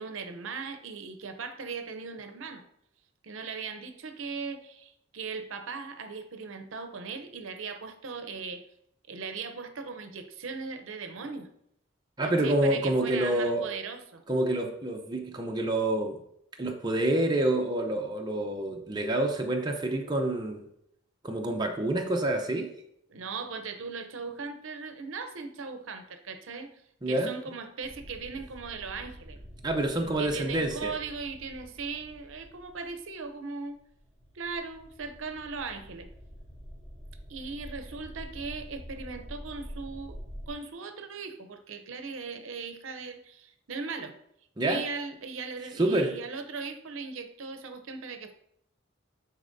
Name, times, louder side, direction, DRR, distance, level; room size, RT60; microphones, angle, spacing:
voice 1, 0.0-2.6 3.2-8.6 9.1-11.5 12.2-14.2 23.1-26.7 27.1-29.4 30.0-33.8 34.3-36.1 37.3-40.2 40.5-44.2 44.6-48.3, right 4 dB, 75° right, 8 dB, 0.7 m, -38 dB
voice 2, 12.2-13.6 14.3-16.2 16.6-20.7 21.2-22.7 27.0-27.3 29.6-30.9 44.6-44.8 45.8-46.1, right 1 dB, 20° right, 2 dB, 0.6 m, -27 dB
sound 1, 27.8-33.3 33.7-40.5, equal, 5° left, 2.7 m, -46 dB
9.8 x 4.1 x 2.6 m, 0.73 s
head